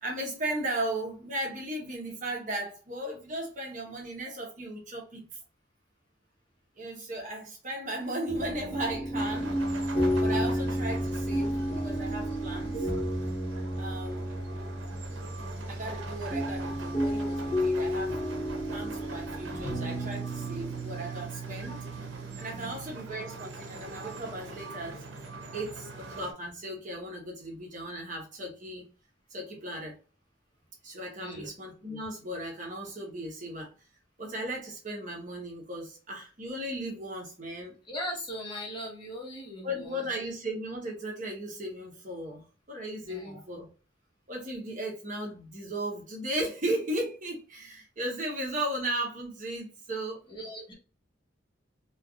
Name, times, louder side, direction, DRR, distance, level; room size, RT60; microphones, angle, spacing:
voice 1, 0.0-5.3 6.8-9.6 10.2-12.9 13.8-14.5 15.7-18.2 18.7-21.9 22.4-25.2 25.5-28.8 29.3-30.0 30.8-33.7 34.2-37.8 39.6-42.4 42.7-43.7 44.3-50.3, right 1 dB, 45° right, 1.0 m, -36 dB
sound 1, 8.3-26.1, equal, 40° left, 0.7 m, -33 dB
sound 2, 9.1-26.3, right 2 dB, 85° right, 0.7 m, -44 dB
voice 2, 37.9-40.1 43.1-43.4 50.3-50.7, equal, 25° left, 1.1 m, -39 dB
3.3 x 2.4 x 2.4 m
head